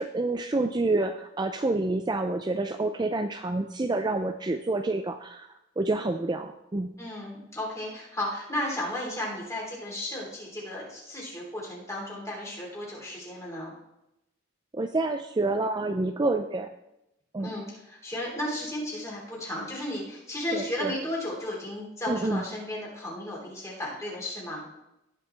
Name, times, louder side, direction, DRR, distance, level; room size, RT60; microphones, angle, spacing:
voice 1, 0.0-5.5 5.8-7.0 14.7-16.7 17.3-17.5 20.5-20.9 22.1-22.5, right 2 dB, 20° right, 6 dB, 0.4 m, -28 dB
voice 2, 7.0-13.7 17.4-24.7, left 1 dB, 15° left, -4 dB, 3.4 m, -34 dB
18.0 x 6.1 x 3.4 m, 0.87 s
head